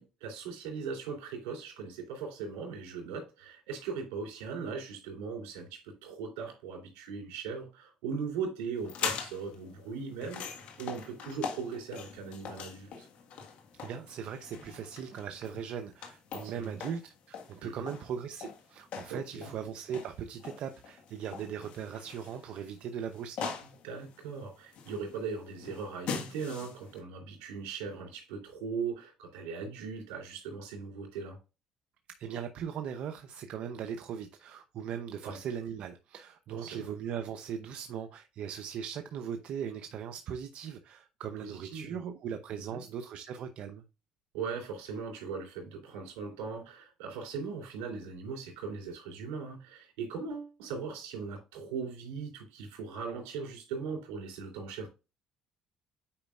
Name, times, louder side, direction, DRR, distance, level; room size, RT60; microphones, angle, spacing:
voice 1, 0.0-13.1 16.3-16.8 17.6-17.9 19.1-19.5 23.6-31.4 35.2-35.4 36.5-36.9 41.4-42.0 42.7-42.8 44.3-54.9, right 5 dB, 85° right, 3.1 m, -39 dB
sound 1, 8.8-27.0, left 6 dB, 70° left, 1.5 m, -42 dB
voice 2, 13.8-23.5 32.2-43.8, right 8 dB, 65° right, 0.7 m, -39 dB
8.5 x 5.1 x 2.4 m
supercardioid pair, 75°, 2 cm